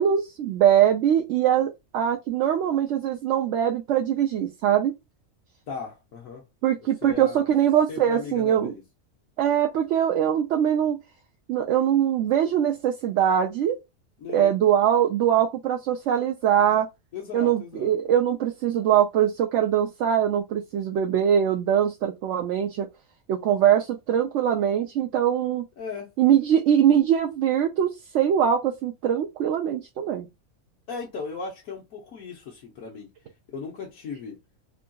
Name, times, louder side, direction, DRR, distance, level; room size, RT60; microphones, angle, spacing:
voice 1, 0.0-4.9 6.6-8.7 9.4-11.0 11.5-13.8 14.3-16.9 17.3-22.9 23.3-25.7 26.2-30.3, right 9 dB, 70° right, 0.8 m, -22 dB
voice 2, 5.7-6.5 7.0-7.5 7.9-8.8 14.2-14.6 17.1-18.0 25.8-26.1 30.9-33.1 33.5-34.4, left 5 dB, 90° left, 1.2 m, -37 dB
3.7 x 2.5 x 2.2 m
omnidirectional pair, 1.4 m